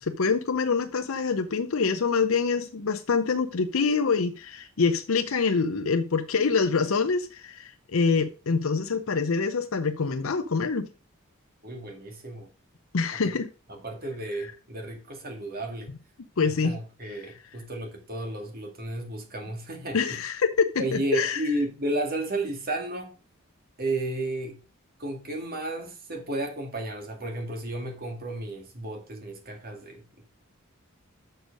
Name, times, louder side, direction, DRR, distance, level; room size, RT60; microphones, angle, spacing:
voice 1, 0.0-10.9 12.9-13.5 16.4-16.8 19.9-21.4, left 5 dB, 70° left, 0.7 m, -25 dB
voice 2, 11.6-12.5 13.1-13.2 13.7-15.9 16.4-20.2 20.8-23.1 23.8-24.6 25.0-30.2, right 1 dB, 45° right, 2.1 m, -33 dB
6.8 x 6.3 x 5.1 m
head